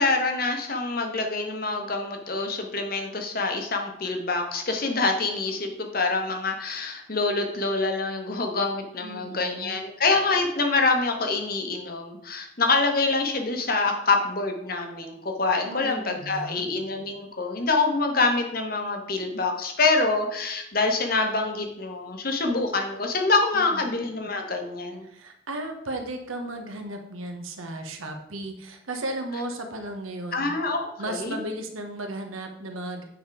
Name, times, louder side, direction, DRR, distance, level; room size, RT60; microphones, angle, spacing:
voice 1, 0.0-25.1 30.3-31.4, left 3 dB, 45° left, 4 dB, 1.1 m, -26 dB
voice 2, 9.0-9.8 15.6-16.6 23.5-23.8 25.0-30.5 31.0-33.0, right 1 dB, 90° right, 5 dB, 1.1 m, -35 dB
9.2 x 3.6 x 4.8 m, 0.78 s
head